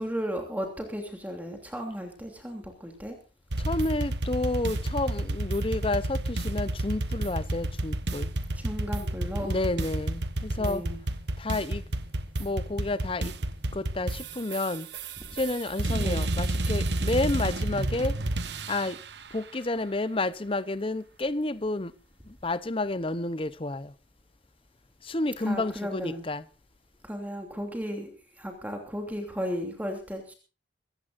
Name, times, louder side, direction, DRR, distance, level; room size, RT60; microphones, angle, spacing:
voice 1, 0.0-3.1 8.5-9.5 10.6-11.0 15.3-15.4 15.9-16.3 25.4-26.2 27.0-28.1 28.4-30.3, equal, 10° right, 2.9 m, -35 dB
sound 1, 3.5-19.1, right 1 dB, 65° right, 1.2 m, -30 dB
voice 2, 3.6-8.3 9.4-10.8 11.4-11.8 12.4-13.3 13.7-14.9 15.3-18.2 18.7-19.0 19.3-21.9 22.4-23.9 25.0-26.4, left 2 dB, 30° left, 0.8 m, -30 dB
24.5 x 15.0 x 2.6 m
head